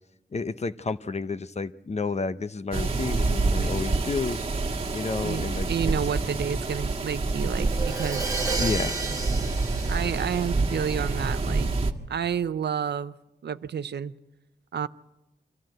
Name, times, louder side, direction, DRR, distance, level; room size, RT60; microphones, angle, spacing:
voice 1, 0.3-4.4 4.9-5.7 8.6-9.0, left 4 dB, 40° left, 13 dB, 0.8 m, -30 dB
sound 1, 2.7-11.9, right 3 dB, 35° right, 1.6 m, -27 dB
voice 2, 5.2-8.4 9.9-11.7 12.1-13.1 13.4-14.1 14.7-14.9, right 8 dB, 80° right, 14 dB, 0.6 m, -30 dB
Crash cymbal, 7.6-11.3, right 3 dB, 20° right, 1.7 m, -33 dB
24.5 x 14.5 x 7.8 m, 0.99 s
wide cardioid pair, 85°, 17 cm